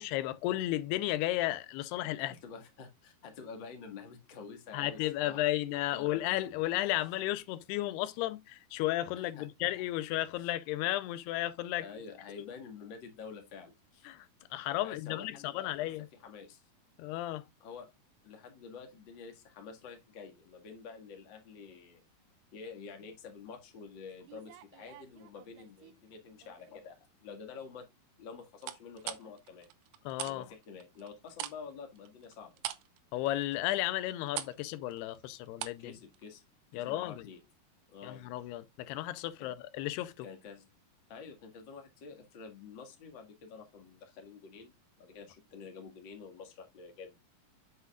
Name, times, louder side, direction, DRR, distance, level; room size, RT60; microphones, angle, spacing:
voice 1, 0.0-2.3 4.7-11.9 14.1-14.3 14.5-16.1 17.0-17.4 30.1-30.5 33.1-36.0 36.7-37.2 38.0-40.3, left 15 dB, 90° left, 2.7 m, -33 dB
voice 2, 2.2-5.4 5.9-6.2 7.0-7.1 9.2-9.5 10.4-10.5 11.8-14.1 14.8-15.9 16.2-16.6 17.6-17.9 18.2-22.0 22.5-27.9 28.2-29.7 30.2-32.6 35.8-36.4 36.7-37.4 37.9-38.2 39.4-39.5 40.2-40.7 41.1-47.2, left 5 dB, 40° left, 1.8 m, -48 dB
sound 1, 24.2-25.9 26.4-26.9 28.6-30.4 30.6-35.9 36.1-36.3, right 14 dB, 85° right, 2.9 m, -43 dB
8.2 x 7.8 x 2.3 m
omnidirectional pair, 4.6 m